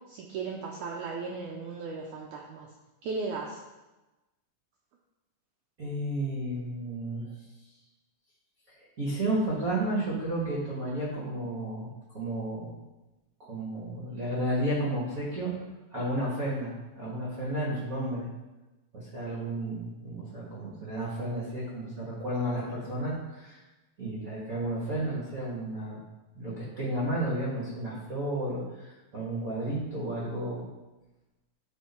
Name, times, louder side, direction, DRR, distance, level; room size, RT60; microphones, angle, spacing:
voice 1, 0.1-2.7 3.0-3.6, right 4 dB, 80° right, 0 dB, 1.8 m, -36 dB
voice 2, 5.8-7.3 9.0-11.9 12.1-12.7 13.4-15.5 15.9-18.3 18.9-23.6 24.0-26.0 26.3-30.6, right 1 dB, 50° right, -6 dB, 1.0 m, -32 dB
10.5 x 4.4 x 4.3 m, 1.1 s
omnidirectional pair, 4.2 m